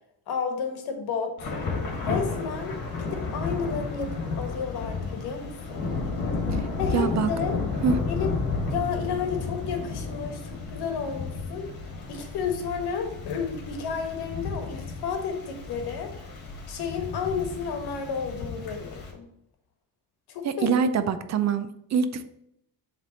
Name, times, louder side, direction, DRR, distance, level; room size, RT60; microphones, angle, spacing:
voice 1, 0.3-1.5 2.0-5.9 6.8-7.6 8.1-8.3 8.7-11.7 12.1-16.1 16.7-19.3 20.3-20.7, left 6 dB, 80° left, 4 dB, 1.3 m, -32 dB
Thunder / Rain, 1.4-19.1, left 4 dB, 65° left, 1.6 m, -32 dB
voice 2, 6.9-7.3 7.8-8.0 20.4-22.2, right 6 dB, 45° right, 11 dB, 0.5 m, -25 dB
7.3 x 3.3 x 3.9 m, 0.77 s
cardioid pair, 125°, 38 cm